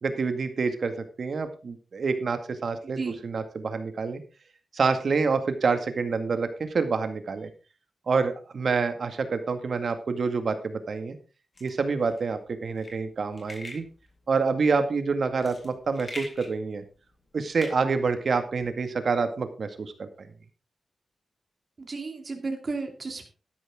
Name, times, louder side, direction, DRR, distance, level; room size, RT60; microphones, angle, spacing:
voice 1, 0.0-0.9 1.2-4.2 4.7-7.5 8.1-11.2 11.6-13.9 14.3-16.8 17.3-20.3, right 4 dB, 65° right, 8 dB, 1.9 m, -27 dB
sound 1, 11.5-18.7, left 1 dB, 35° left, 3.7 m, -45 dB
voice 2, 21.8-23.3, right 3 dB, 50° right, 4 dB, 2.5 m, -33 dB
12.5 x 10.5 x 3.6 m, 0.33 s
cardioid pair, 75°, 0 cm